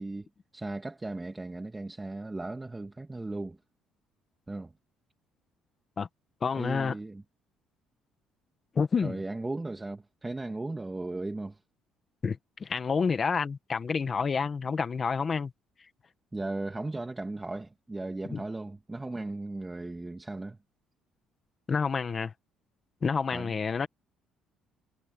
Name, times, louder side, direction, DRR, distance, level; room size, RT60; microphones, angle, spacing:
voice 1, 0.0-3.6 4.5-4.7 6.6-7.2 9.0-11.6 16.3-20.6 23.3-23.5, right 2 dB, 15° right, 2.1 m, -36 dB
voice 2, 6.4-7.0 8.7-9.2 12.2-15.5 18.3-18.4 21.7-22.3 23.0-23.9, left 5 dB, 35° left, 1.5 m, -29 dB
cardioid pair, 110°, 0 cm